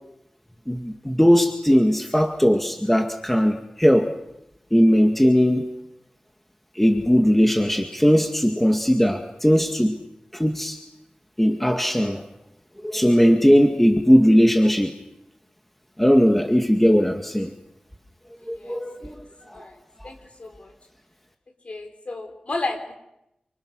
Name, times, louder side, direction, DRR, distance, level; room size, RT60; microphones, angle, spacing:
voice 1, 0.7-4.1 4.7-5.7 6.8-10.0 10.3-10.8 11.4-12.2 12.8-14.9 16.0-17.5 18.5-19.6 20.0-20.1, equal, 5° left, 4 dB, 2.1 m, -19 dB
voice 2, 18.5-19.2 19.5-19.8 20.0-20.7 21.6-22.9, left 2 dB, 50° left, 4 dB, 5.0 m, -33 dB
29.0 x 24.5 x 6.5 m, 0.85 s
wide cardioid pair, 85°, 3 cm